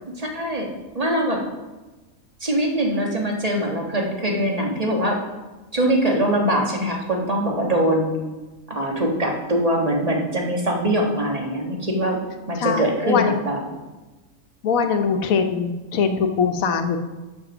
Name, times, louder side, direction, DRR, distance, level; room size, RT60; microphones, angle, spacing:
voice 1, 0.1-1.4 2.4-5.2 5.7-8.2 8.7-12.2 12.5-13.6, right 1 dB, 30° right, 0 dB, 1.5 m, -22 dB
voice 2, 12.6-13.4 14.6-17.0, left 6 dB, 85° left, 7 dB, 1.3 m, -22 dB
7.8 x 6.8 x 6.0 m, 1.2 s
omnidirectional pair, 1.4 m